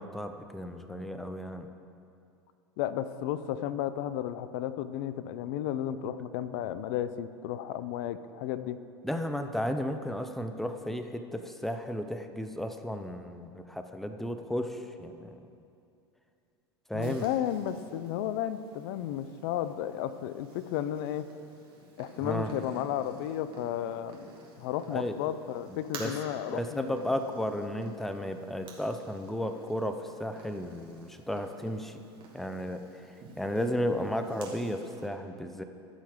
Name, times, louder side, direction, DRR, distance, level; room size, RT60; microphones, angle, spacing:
voice 1, 0.0-1.7 9.0-15.5 16.9-17.3 22.2-22.5 24.9-25.2 25.7-26.1 26.5-32.0 32.3-35.6, equal, ahead, 7 dB, 0.7 m, -34 dB
voice 2, 2.8-8.8 16.9-21.3 22.0-24.3 24.6-27.0, left 11 dB, 55° left, 13 dB, 0.5 m, -33 dB
Purr, 17.0-35.1, right 3 dB, 40° right, 2.4 m, -51 dB
15.0 x 5.7 x 5.0 m, 2.5 s
hypercardioid pair, 90°, 13 cm